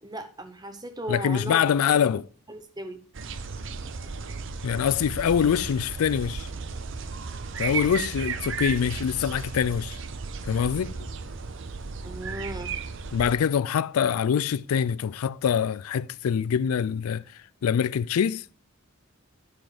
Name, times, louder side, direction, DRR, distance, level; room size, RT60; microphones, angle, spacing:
voice 1, 0.0-1.6 1.9-2.1 2.5-3.0 12.0-12.8, right 1 dB, 20° right, 1.0 m, -36 dB
voice 2, 1.1-2.2 4.6-6.5 7.6-10.0 10.4-11.1 13.1-17.2 17.6-18.4, left 8 dB, 80° left, 0.4 m, -24 dB
sound 1, 3.1-13.3, right 5 dB, 55° right, 0.7 m, -35 dB
11.0 x 6.2 x 4.9 m
head